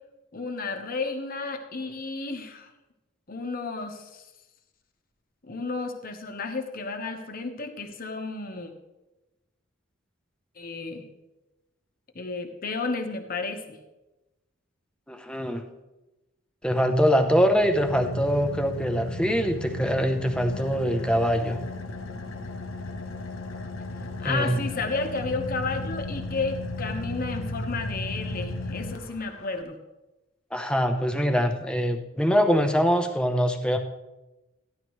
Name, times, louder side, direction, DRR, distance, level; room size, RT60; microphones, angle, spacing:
voice 1, 0.3-2.7 3.3-4.2 5.4-8.7 10.6-11.1 12.1-13.8 24.2-29.8, left 3 dB, 45° left, 5 dB, 1.1 m, -32 dB
voice 2, 15.1-15.7 16.6-21.6 24.2-24.6 30.5-33.8, equal, 5° left, 5 dB, 0.8 m, -23 dB
Car / Idling, 16.7-29.6, left 2 dB, 80° left, 0.9 m, -35 dB
14.5 x 10.5 x 3.1 m, 1.0 s
head